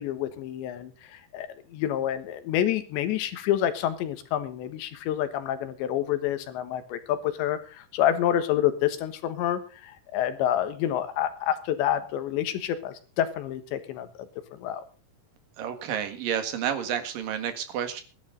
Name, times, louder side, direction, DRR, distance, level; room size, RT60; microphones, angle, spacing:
voice 1, 0.0-14.1 14.6-14.8, left 11 dB, 90° left, 10 dB, 3.7 m, -28 dB
voice 2, 15.6-18.0, right 9 dB, 60° right, 8 dB, 3.3 m, -30 dB
21.0 x 11.5 x 3.9 m, 0.35 s
omnidirectional pair, 5.0 m